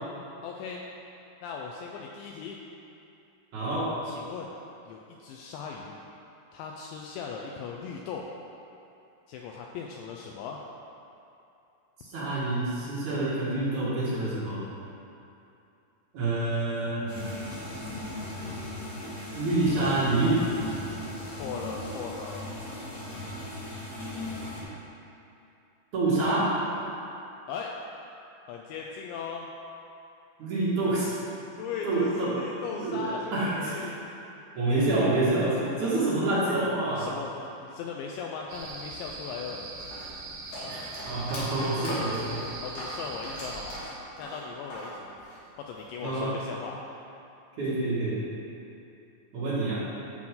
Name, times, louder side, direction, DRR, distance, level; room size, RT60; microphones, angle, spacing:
voice 1, 0.4-0.8 1.4-2.6 4.1-4.5 4.9-6.0 6.5-8.3 9.3-10.6 21.4-22.5 27.5-27.7 28.5-29.5 31.6-34.0 36.5-39.7 42.6-43.8 44.2-45.1 45.6-46.8, left 6 dB, 90° left, 0 dB, 2.5 m, -38 dB
voice 2, 3.5-3.9 12.0-14.6 16.1-17.1 19.3-20.4 24.6-24.7 25.9-26.5 30.4-31.1 31.8-32.3 32.8-33.9 34.5-37.1 40.6-42.4 46.0-46.3 47.6-48.2 49.3-49.9, right 2 dB, 50° right, -9 dB, 2.5 m, -27 dB
sound 1, 17.1-24.6, left 1 dB, 45° left, 1.3 m, -37 dB
sound 2, 38.5-43.8, right 3 dB, 75° right, 3.5 m, -41 dB
sound 3, 39.8-44.9 45.2-46.0, left 1 dB, 60° left, 4.3 m, -39 dB
14.5 x 6.0 x 3.8 m, 2.7 s
omnidirectional pair, 5.7 m